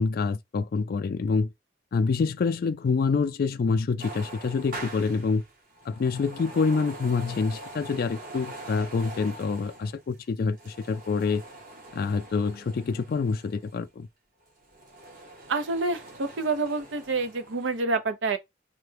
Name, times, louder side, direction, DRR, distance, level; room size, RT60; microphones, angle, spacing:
voice 1, 0.0-1.5 1.9-5.4 5.9-11.4 11.9-14.1, left 4 dB, 50° left, 0.3 m, -26 dB
sound 1, 4.0-13.8 14.4-17.8, right 2 dB, 45° right, 0.9 m, -44 dB
voice 2, 15.5-18.4, right 3 dB, 80° right, 0.7 m, -28 dB
3.3 x 2.2 x 3.3 m
head